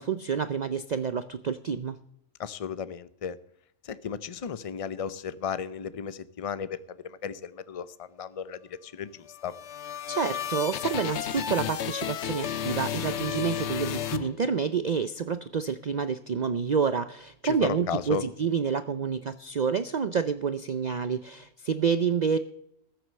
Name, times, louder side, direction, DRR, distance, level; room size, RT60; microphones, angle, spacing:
voice 1, 0.0-2.0 10.1-22.4, right 6 dB, 50° right, 12 dB, 0.5 m, -28 dB
voice 2, 2.4-3.4 3.8-9.5 17.4-18.2, left 7 dB, 40° left, 15 dB, 0.6 m, -35 dB
sound 1, 9.3-14.9, left 9 dB, 70° left, 1.0 m, -33 dB
14.0 x 7.9 x 6.5 m, 0.75 s
omnidirectional pair, 1.3 m